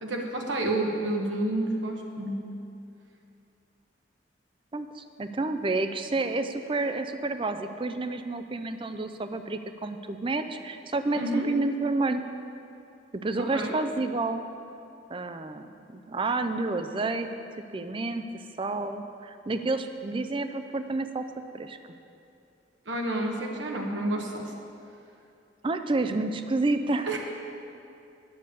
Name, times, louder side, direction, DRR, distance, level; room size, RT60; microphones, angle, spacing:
voice 1, 0.0-2.4 11.2-11.5 13.5-13.8 22.8-24.5 27.1-27.2, right 1 dB, 85° right, 0 dB, 1.2 m, -29 dB
voice 2, 4.7-12.2 13.2-14.4 15.1-17.3 17.7-18.3 18.6-21.3 21.5-21.8 25.6-27.2, right 2 dB, 30° right, 9 dB, 0.4 m, -29 dB
9.4 x 6.9 x 6.8 m, 2.6 s
head